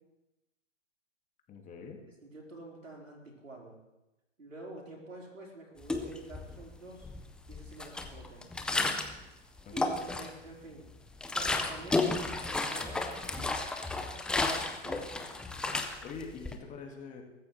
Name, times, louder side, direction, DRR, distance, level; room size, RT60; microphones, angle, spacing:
voice 1, 1.5-2.0 9.7-10.0 16.0-17.2, left 5 dB, 20° left, 2 dB, 2.1 m, -44 dB
voice 2, 2.2-3.8 4.4-7.1 7.5-8.5 9.7-10.9 11.3-12.3 12.7-13.5 14.3-15.4, right 2 dB, 90° right, -1 dB, 4.4 m, -47 dB
sound 1, 5.8-6.6 7.0-9.2 9.6-10.5 10.9-16.5, left 3 dB, ahead, 0.4 m, -33 dB
23.0 x 14.0 x 3.2 m, 0.98 s
figure-of-eight pair, 115°, 38 cm